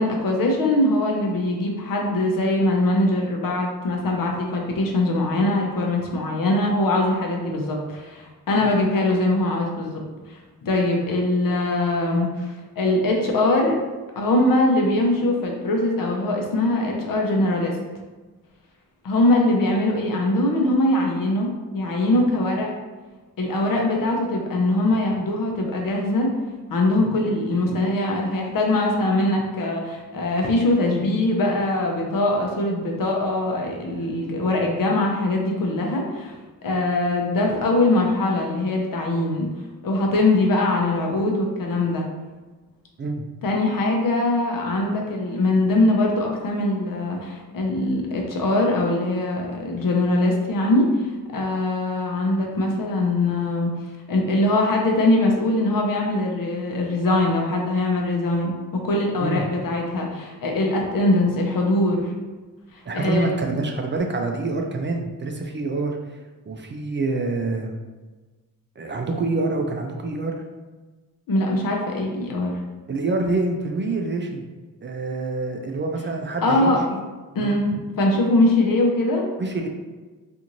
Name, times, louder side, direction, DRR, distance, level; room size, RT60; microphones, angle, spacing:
voice 1, 0.0-10.0 10.3-13.8 14.2-17.7 19.0-22.7 23.4-26.3 26.7-36.3 36.6-39.5 39.8-42.1 43.4-51.1 51.3-53.7 54.1-62.1 62.9-63.3 71.3-72.6 76.4-76.8 77.3-79.2, left 2 dB, 70° left, 0 dB, 0.7 m, -22 dB
voice 2, 62.9-66.0 66.5-67.8 68.8-70.4 72.9-74.5 74.8-77.0 77.4-77.6 79.4-79.7, right 3 dB, 35° right, 3 dB, 0.4 m, -26 dB
2.5 x 2.5 x 2.9 m, 1.3 s
cardioid pair, 75°, 35 cm